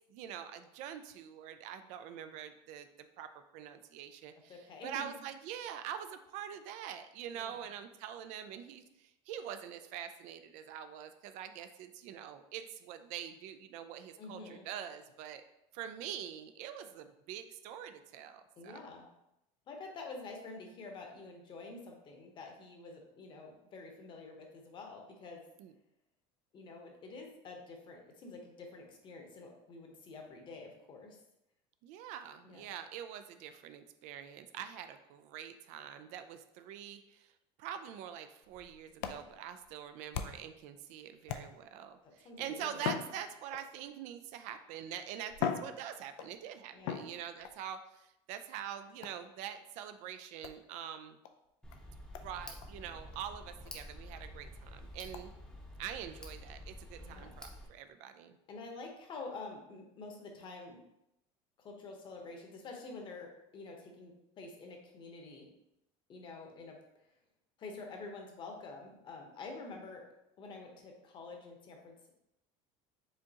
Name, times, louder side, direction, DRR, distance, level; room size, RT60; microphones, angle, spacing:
voice 1, 0.1-15.4 15.7-18.8 25.6-25.7 31.8-37.3 37.6-51.2 52.2-55.3 55.8-58.4, right 9 dB, 65° right, 10 dB, 0.4 m, -45 dB
voice 2, 4.5-5.1 7.3-7.6 14.2-14.7 18.6-19.1 19.7-25.4 26.5-31.2 32.4-32.7 42.0-42.9 46.7-47.0 57.0-57.4 58.5-60.8 61.6-65.5 66.1-66.8 67.6-70.1 70.4-72.1, left 3 dB, 35° left, 2 dB, 0.9 m, -48 dB
sound 1, 38.4-40.6 41.3-41.9 42.7-43.9 44.7-44.8 45.3-46.4 46.8-47.6 49.0-49.3 50.4-50.6 51.2-51.3 51.7-51.8 52.1-52.3 52.6-52.7 53.1-53.2 53.6-53.7 54.2-54.3 55.1-55.3, left 8 dB, 90° left, 0.5 m, -40 dB
Tick, 51.6-57.7, left 1 dB, 5° left, 0.7 m, -49 dB
5.0 x 3.6 x 2.9 m, 0.85 s
cardioid pair, 140°, 13 cm